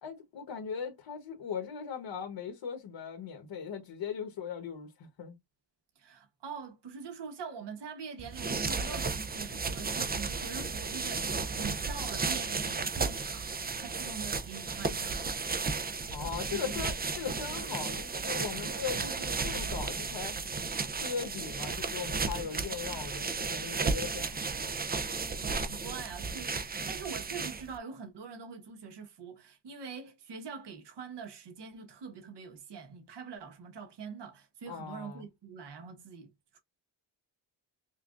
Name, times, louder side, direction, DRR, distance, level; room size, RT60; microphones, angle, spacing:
voice 1, 0.0-5.3 16.1-20.3 20.9-24.4 34.7-35.2, left 7 dB, 65° left, 1.3 m, -39 dB
voice 2, 6.0-15.2 16.5-16.8 25.3-36.6, right 6 dB, 60° right, 1.2 m, -44 dB
sound 1, 8.2-27.8, right 4 dB, 20° right, 0.5 m, -34 dB
5.7 x 2.3 x 2.5 m
wide cardioid pair, 120°, 46 cm